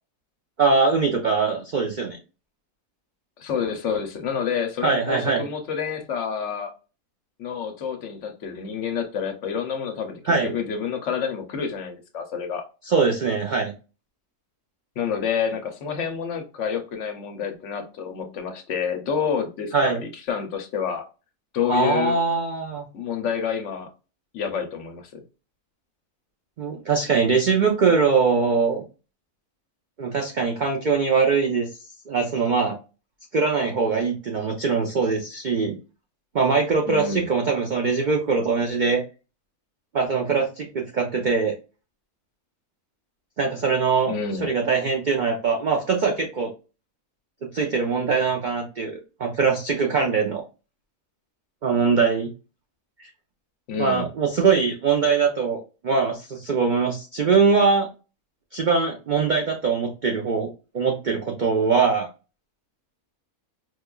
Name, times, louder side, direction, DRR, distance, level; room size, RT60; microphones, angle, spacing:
voice 1, 0.6-2.2 4.8-5.4 10.3-10.5 12.9-13.7 19.7-20.0 21.7-22.9 26.6-28.8 30.0-31.7 32.1-32.8 33.3-35.8 36.3-39.0 39.9-41.5 43.4-44.1 44.4-46.5 47.5-50.4 51.6-52.3 53.0-53.1 53.8-57.9 58.5-60.5 60.7-62.1, right 5 dB, 75° right, 0.4 m, -22 dB
voice 2, 3.4-6.7 7.4-12.6 15.0-21.0 21.5-22.2 22.9-23.9 24.3-25.2 36.9-37.3 44.1-44.5 53.7-54.1, left 7 dB, 65° left, 0.9 m, -28 dB
4.6 x 2.2 x 2.3 m
omnidirectional pair, 1.5 m